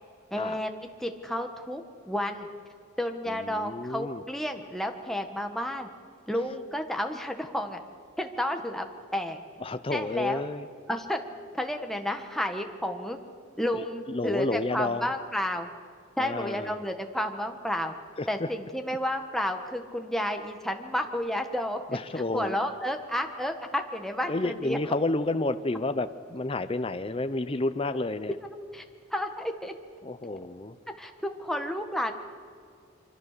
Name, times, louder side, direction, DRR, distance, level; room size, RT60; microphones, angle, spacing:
voice 1, 0.3-0.7 1.0-2.5 3.0-5.9 6.3-7.8 8.2-8.8 9.1-9.4 9.9-10.4 10.9-11.2 11.5-13.2 13.6-15.7 16.2-17.9 18.3-22.0 22.3-24.8 28.7-28.8 29.1-29.7 31.0-32.1, left 1 dB, ahead, 4 dB, 1.5 m, -31 dB
voice 2, 3.3-4.2 9.6-10.7 13.7-15.1 16.2-16.7 18.2-18.5 21.9-22.6 24.3-28.4 30.0-30.8, left 2 dB, 25° left, 10 dB, 0.7 m, -30 dB
25.0 x 25.0 x 6.8 m, 2.2 s
head